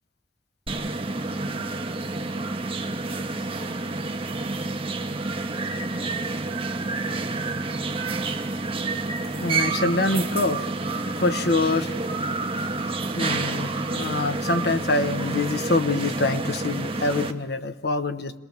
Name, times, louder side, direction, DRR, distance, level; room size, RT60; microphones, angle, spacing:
sound 1, 0.7-17.3, right 3 dB, 35° right, 1.3 m, -29 dB
voice 1, 9.4-12.0 13.2-18.3, left 2 dB, 65° left, 10 dB, 1.0 m, -25 dB
27.5 x 20.5 x 7.2 m, 1.1 s
head